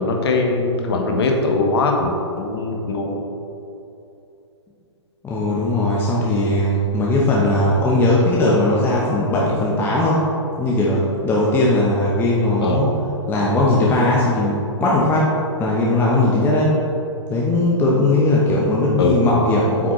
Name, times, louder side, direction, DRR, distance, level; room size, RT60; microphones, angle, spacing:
voice 1, 0.0-3.2 12.6-12.8 19.0-19.2, left 3 dB, 55° left, 2 dB, 1.2 m, -21 dB
voice 2, 5.2-10.2 10.6-12.9 13.3-15.3 15.6-16.7 17.3-19.9, left 2 dB, 15° left, -5 dB, 0.9 m, -18 dB
8.3 x 6.0 x 3.1 m, 2.8 s
figure-of-eight pair, 120°, 15 cm